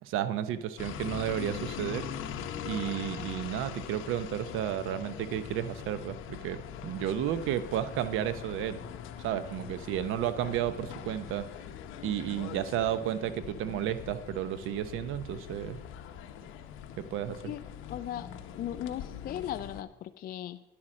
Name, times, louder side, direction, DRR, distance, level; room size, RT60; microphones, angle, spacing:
voice 1, 0.0-2.1 2.6-8.8 9.2-11.5 12.0-15.8 17.0-17.5, right 11 dB, 80° right, 12 dB, 0.8 m, -32 dB
sound 1, 0.8-19.8, left 8 dB, 75° left, 0.9 m, -42 dB
voice 2, 17.9-20.6, left 11 dB, 45° left, 10 dB, 0.4 m, -37 dB
10.5 x 8.6 x 6.3 m, 0.97 s
cardioid pair, 140°, 21 cm